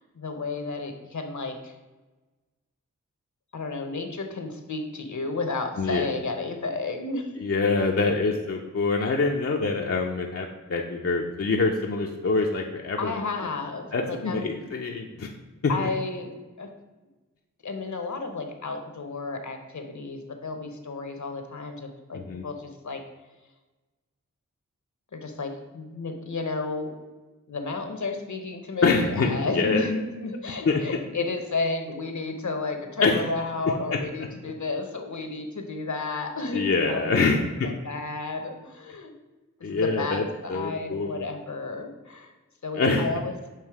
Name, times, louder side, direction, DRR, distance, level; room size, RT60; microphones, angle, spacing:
voice 1, 0.0-1.7 3.5-7.3 13.0-14.5 15.7-16.3 16.6-16.7 17.6-23.0 25.1-26.9 27.5-36.6 36.9-37.3 37.6-39.1 39.7-42.3 42.6-43.3, left 3 dB, 60° left, 5 dB, 1.0 m, -32 dB
voice 2, 5.8-6.1 7.4-13.2 13.9-15.3 15.6-15.9 22.1-22.4 28.8-29.8 30.7-30.8 33.0-33.2 33.9-34.0 36.5-37.7 39.6-40.2 40.5-41.2 42.7-43.1, left 3 dB, 45° left, 0 dB, 0.6 m, -25 dB
7.4 x 2.7 x 4.8 m, 1.2 s
cardioid pair, 40°, 32 cm